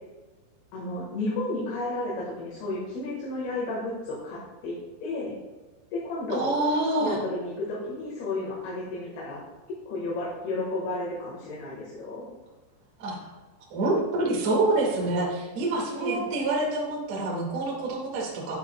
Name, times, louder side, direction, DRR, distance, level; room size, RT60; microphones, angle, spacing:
voice 1, 0.7-5.3 5.9-6.5 7.0-9.4 9.9-12.2 16.0-16.2, left 2 dB, 65° left, -5 dB, 3.3 m, -32 dB
voice 2, 6.3-7.2 13.0-13.2 13.7-18.6, right 2 dB, 45° right, -3 dB, 2.5 m, -26 dB
12.0 x 9.5 x 2.3 m, 1.2 s
omnidirectional pair, 5.4 m